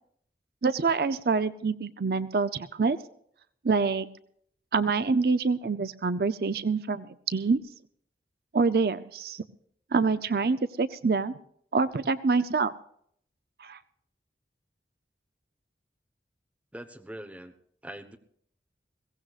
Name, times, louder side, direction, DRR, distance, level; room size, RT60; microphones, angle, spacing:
voice 1, 0.6-3.0 3.6-4.1 4.7-7.6 8.5-9.4 9.9-11.4 11.7-12.7 13.6-13.8, right 4 dB, 55° right, 12 dB, 0.5 m, -26 dB
voice 2, 16.7-17.5 17.8-18.2, right 1 dB, 5° right, 4 dB, 0.9 m, -42 dB
22.0 x 16.5 x 2.4 m, 0.66 s
head